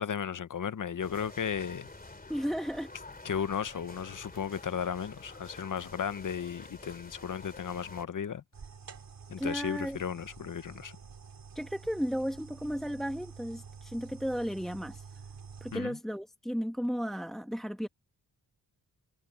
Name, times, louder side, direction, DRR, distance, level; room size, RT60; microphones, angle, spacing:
voice 1, 0.0-1.9 3.2-8.4 9.3-11.0 15.7-16.0, left 7 dB, 55° left, 1.0 m, -35 dB
sound 1, 1.0-8.1, left 2 dB, 20° left, 3.3 m, -48 dB
voice 2, 2.3-2.9 9.4-10.0 11.5-15.0 15.6-17.9, equal, ahead, 1.2 m, -34 dB
sound 2, 8.5-15.8, right 5 dB, 60° right, 3.3 m, -49 dB
cardioid pair, 65°, 39 cm